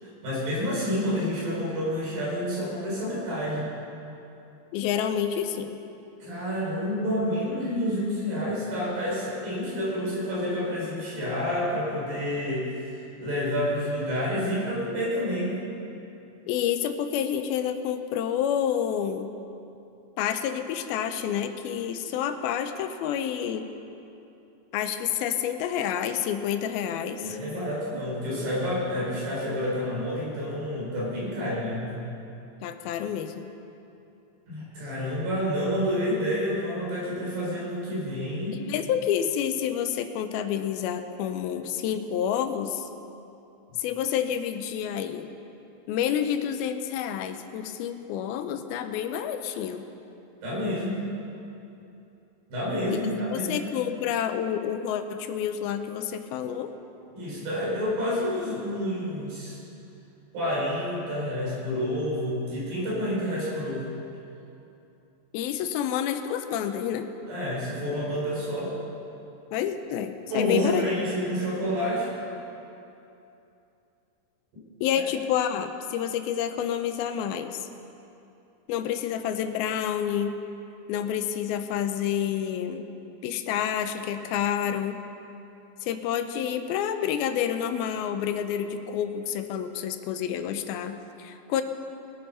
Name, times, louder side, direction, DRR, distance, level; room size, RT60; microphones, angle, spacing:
voice 1, 0.0-3.7 6.2-15.6 27.2-32.0 34.5-38.6 50.4-51.0 52.5-53.6 57.2-59.6 60.3-63.9 67.3-68.7 70.3-72.1, equal, 75° right, -6 dB, 6.2 m, -29 dB
voice 2, 4.7-5.8 16.5-19.3 20.2-23.7 24.7-27.4 32.6-33.5 38.5-42.9 43.8-45.3 45.9-49.9 52.9-53.0 53.3-56.7 65.3-67.1 69.5-70.9 74.8-77.7 78.7-80.3 80.9-82.9 83.2-85.0 85.8-91.6, left 9 dB, 85° left, 8 dB, 2.6 m, -29 dB
21.5 x 8.6 x 5.6 m, 2.8 s
omnidirectional pair, 4.3 m